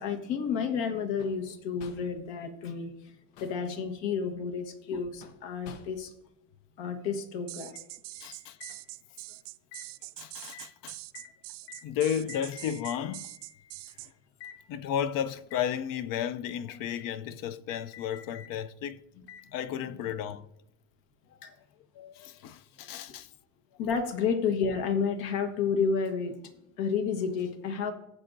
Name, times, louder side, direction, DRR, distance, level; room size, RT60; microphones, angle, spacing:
voice 1, 0.0-6.1 6.8-7.7 8.2-8.4 21.4-21.5 23.8-27.9, left 6 dB, 70° left, 1.4 m, -31 dB
sound 1, 1.2-1.5 1.8-2.2 3.1-3.7 5.2-6.2 8.6-8.8 9.7-9.9 10.5-10.7 11.1-11.3 11.7-11.9 12.3-12.5 12.8-13.1 13.9-14.0 14.4-14.6 15.5-15.7 16.9-17.1 17.7-18.5 19.3-19.5 20.3-20.4, left 8 dB, 85° left, 0.9 m, -48 dB
sound 2, 7.5-14.1, right 20 dB, 65° right, 0.5 m, -44 dB
voice 2, 8.2-8.6 10.2-11.0 11.8-13.7 14.7-19.0 19.5-20.5 22.0-23.3, left 9 dB, 50° left, 0.5 m, -33 dB
18.0 x 7.5 x 2.6 m
cardioid pair, 130°, 45 cm